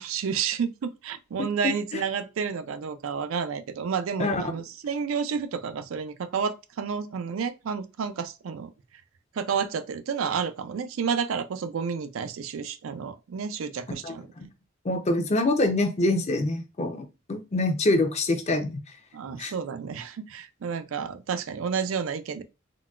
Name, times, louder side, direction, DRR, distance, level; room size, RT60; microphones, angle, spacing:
voice 1, 0.0-8.7 9.4-14.2 19.1-22.4, right 6 dB, 85° right, 0.4 m, -30 dB
voice 2, 1.4-2.0 4.2-4.4 14.0-14.5 14.8-18.8 19.4-19.5, left 2 dB, 35° left, 0.5 m, -26 dB
3.8 x 2.2 x 2.3 m
head